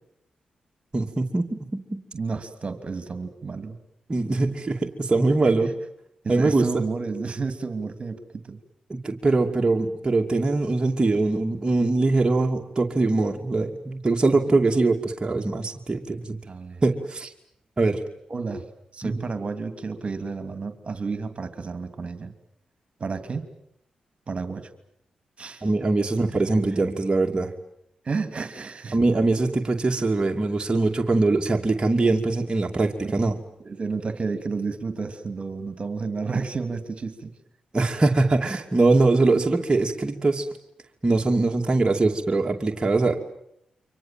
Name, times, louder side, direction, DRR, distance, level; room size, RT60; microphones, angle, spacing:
voice 1, 0.9-1.8 4.1-5.7 6.3-6.8 8.9-16.4 16.8-17.3 17.8-18.0 19.0-19.1 25.6-27.5 28.9-33.4 37.7-40.5 41.0-43.2, right 3 dB, 35° right, 1 dB, 2.6 m, -22 dB
voice 2, 2.1-3.8 5.4-5.5 6.2-8.6 16.4-16.8 18.3-18.6 18.9-22.3 23.0-23.5 24.3-24.7 25.4-25.7 28.0-29.0 33.0-33.3 33.6-37.3, right 4 dB, 50° right, 9 dB, 2.9 m, -31 dB
28.5 x 25.0 x 7.6 m, 0.76 s
supercardioid pair, 50°, 3 cm